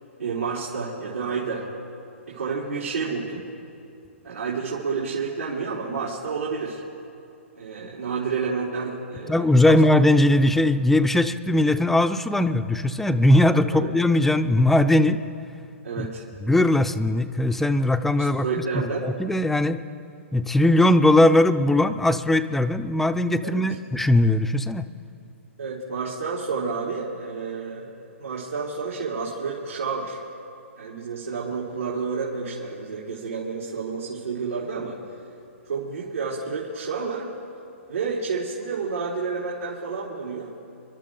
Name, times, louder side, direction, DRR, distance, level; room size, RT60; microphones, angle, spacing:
voice 1, 0.2-1.6 2.3-3.4 4.2-6.8 7.6-9.7 13.7-13.9 15.8-16.2 18.2-19.1 23.4-23.7 25.6-30.2 30.8-35.0 35.6-37.3 37.9-40.5, right 5 dB, 90° right, -7 dB, 3.5 m, -30 dB
voice 2, 9.3-15.2 16.0-16.1 16.4-18.5 18.7-19.8 20.3-24.9, left 1 dB, 5° left, 11 dB, 0.5 m, -19 dB
29.0 x 12.0 x 3.9 m, 2.6 s
hypercardioid pair, 135°, 7 cm